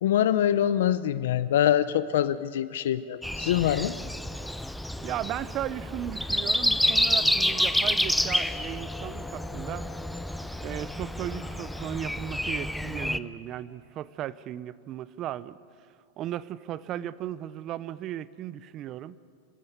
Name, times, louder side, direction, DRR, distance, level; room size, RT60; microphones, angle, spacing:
voice 1, 0.0-3.9, left 11 dB, 80° left, 14 dB, 0.7 m, -24 dB
Breathing, 3.2-13.2, left 1 dB, ahead, 0.5 m, -29 dB
sound 1, 4.7-14.1, left 6 dB, 40° left, 4.5 m, -49 dB
voice 2, 5.0-9.9 10.6-15.6 16.2-19.2, right 12 dB, 35° right, 18 dB, 0.6 m, -36 dB
29.0 x 12.5 x 8.2 m, 2.3 s
supercardioid pair, 130°, 0 cm